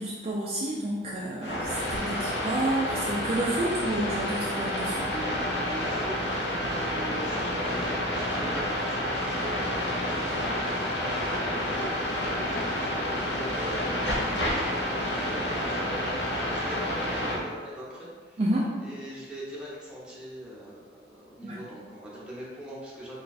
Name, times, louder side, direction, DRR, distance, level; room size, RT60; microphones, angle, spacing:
voice 1, 0.0-5.0 18.4-18.7 21.4-21.6, right 1 dB, 35° right, -5 dB, 0.4 m, -30 dB
sound 1, 1.4-17.4, left 1 dB, 65° left, 0.7 m, -29 dB
voice 2, 5.1-18.4 18.8-23.2, equal, 5° right, -7 dB, 0.7 m, -42 dB
3.3 x 2.3 x 4.0 m, 1.5 s
head